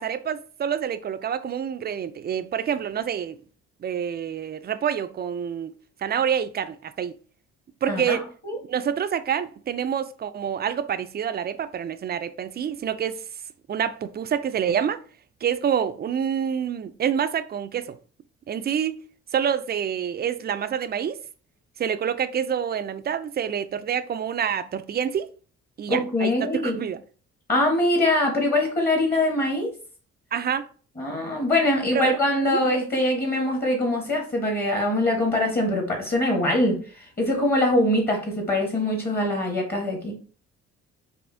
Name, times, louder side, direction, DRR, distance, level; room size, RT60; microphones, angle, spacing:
voice 1, 0.0-3.4 3.8-5.7 6.0-7.1 7.8-8.2 8.7-13.2 13.7-15.0 15.4-18.0 18.5-19.0 19.3-21.2 21.8-25.3 25.8-27.0 30.3-30.7 31.9-32.1 32.5-32.6, right 8 dB, 35° right, 0.4 m, -27 dB
voice 2, 25.9-26.8 27.5-29.7 31.0-36.8 37.2-40.1, left 1 dB, 30° left, 1.3 m, -23 dB
4.8 x 2.6 x 2.6 m
cardioid pair, 90°, 30 cm